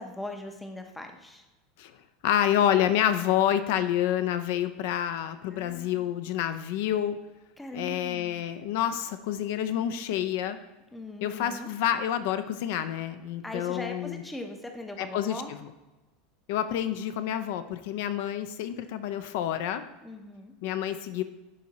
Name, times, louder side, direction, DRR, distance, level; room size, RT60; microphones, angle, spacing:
voice 1, 0.0-1.5 5.5-6.1 7.6-8.5 10.9-11.7 13.4-15.5 20.0-20.5, left 1 dB, 5° left, 4 dB, 0.6 m, -40 dB
voice 2, 2.2-7.2 7.7-10.6 11.2-14.2 15.0-15.3 16.5-19.8 20.6-21.2, left 11 dB, 60° left, 10 dB, 0.4 m, -28 dB
11.0 x 4.1 x 2.8 m, 1.1 s
supercardioid pair, 170°, 0 cm